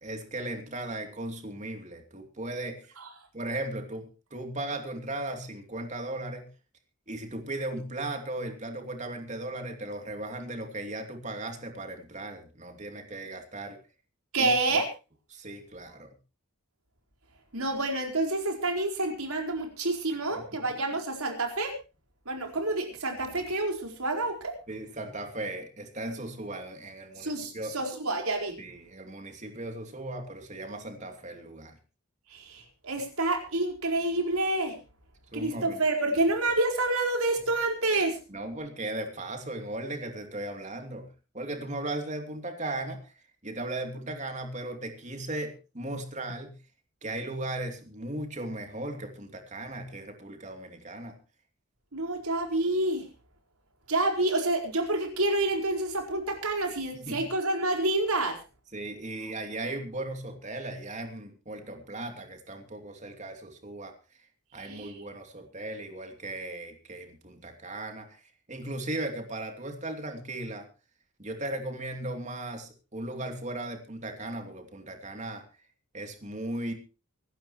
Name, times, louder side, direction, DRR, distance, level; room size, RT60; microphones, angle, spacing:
voice 1, 0.0-2.9 3.3-6.5 7.1-13.8 14.4-14.5 15.3-16.1 20.3-20.6 24.7-27.8 28.6-31.8 35.3-35.8 38.3-41.1 41.3-43.0 43.4-46.6 47.0-51.2 56.9-57.3 58.7-63.9 64.5-68.1 68.5-70.7 71.2-75.4 75.9-76.7, right 1 dB, 35° right, 5 dB, 2.8 m, -37 dB
voice 2, 14.3-14.9 17.5-21.7 22.3-24.5 27.2-28.5 32.3-34.8 35.3-38.2 51.9-53.1 53.9-58.4 64.6-64.9, right 2 dB, 90° right, 3 dB, 4.6 m, -28 dB
25.0 x 12.0 x 3.1 m, 0.32 s
head